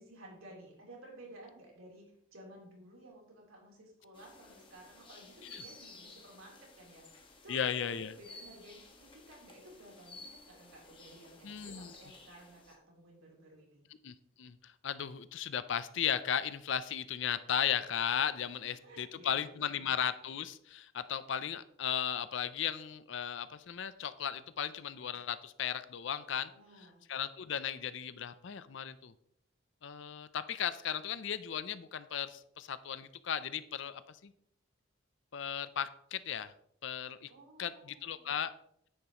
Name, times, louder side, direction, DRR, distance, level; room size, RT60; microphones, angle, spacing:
voice 1, 0.0-13.8 18.8-19.9 26.5-27.0 37.3-38.4, right 1 dB, 80° right, -2 dB, 3.5 m, -55 dB
sound 1, 4.1-12.7, left 3 dB, 25° left, 1.4 m, -55 dB
voice 2, 7.5-8.1 11.4-11.9 14.0-26.5 26.8-29.1 29.8-34.3 35.3-36.5 36.8-37.3 37.6-38.5, left 8 dB, 60° left, 14 dB, 0.5 m, -36 dB
10.0 x 8.8 x 3.0 m, 0.70 s
head